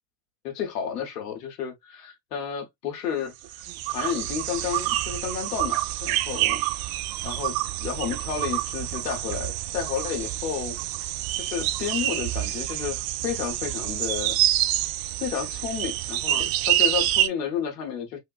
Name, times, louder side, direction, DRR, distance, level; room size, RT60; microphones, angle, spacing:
voice 1, 0.4-3.6 3.9-6.6 7.2-7.6 7.8-10.8 11.3-14.4 15.2-18.2, left 7 dB, 85° left, 0.9 m, -31 dB
sound 1, 3.4-17.3, right 14 dB, 50° right, 0.5 m, -27 dB
3.4 x 2.2 x 2.3 m
hypercardioid pair, 55°, 46 cm